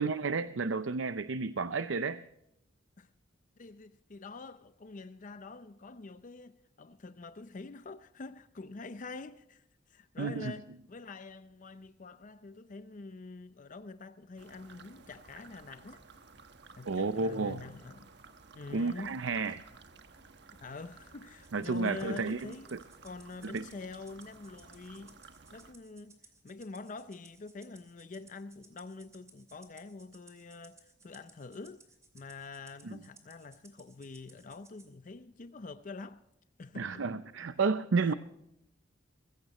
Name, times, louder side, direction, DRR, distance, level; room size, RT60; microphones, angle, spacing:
voice 1, 0.0-2.2 10.2-10.5 16.8-17.6 18.7-19.6 21.5-22.8 23.4-23.6 32.8-33.0 36.8-38.1, right 4 dB, 85° right, 0.6 m, -31 dB
voice 2, 3.6-16.0 16.8-18.1 18.5-19.2 20.6-22.8 23.0-25.2 25.5-26.2 26.4-31.9 32.1-36.2 36.6-37.2 38.0-38.1, left 3 dB, 45° left, 0.5 m, -46 dB
sound 1, 14.4-25.7, right 4 dB, 60° right, 1.4 m, -55 dB
Rattle (instrument), 21.4-34.9, right 3 dB, 15° right, 2.6 m, -61 dB
21.5 x 16.0 x 3.0 m
head